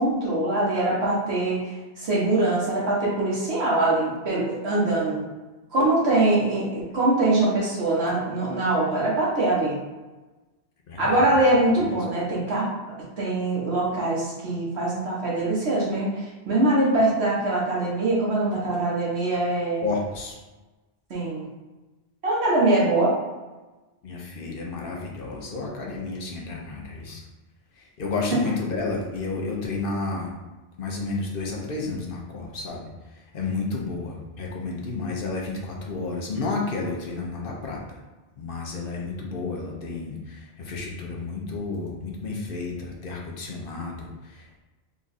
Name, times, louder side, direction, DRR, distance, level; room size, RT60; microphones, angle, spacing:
voice 1, 0.0-5.2 5.7-9.8 11.0-12.7 13.2-19.8 21.1-21.4 22.2-23.1, right 2 dB, 80° right, -5 dB, 1.4 m, -23 dB
voice 2, 10.9-11.3 11.7-11.9 19.8-20.4 24.0-27.2 27.8-30.3 30.8-32.9 33.1-38.0 38.4-44.6, left 3 dB, 60° left, -1 dB, 0.9 m, -31 dB
3.7 x 2.4 x 4.0 m, 1.2 s
omnidirectional pair, 1.1 m